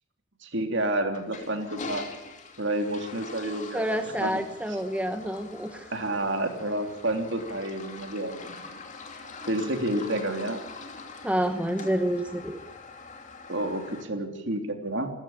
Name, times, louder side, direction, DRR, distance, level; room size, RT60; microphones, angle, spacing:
voice 1, 0.4-2.0 2.6-4.4 5.9-8.8 9.5-10.6 13.5-15.1, right 1 dB, 55° right, 5 dB, 3.3 m, -30 dB
Toilet flush, 1.1-14.0, left 3 dB, 35° left, 2.8 m, -43 dB
voice 2, 3.7-5.9 11.2-12.6, equal, 5° right, 6 dB, 1.0 m, -28 dB
28.5 x 14.5 x 8.8 m, 0.99 s
head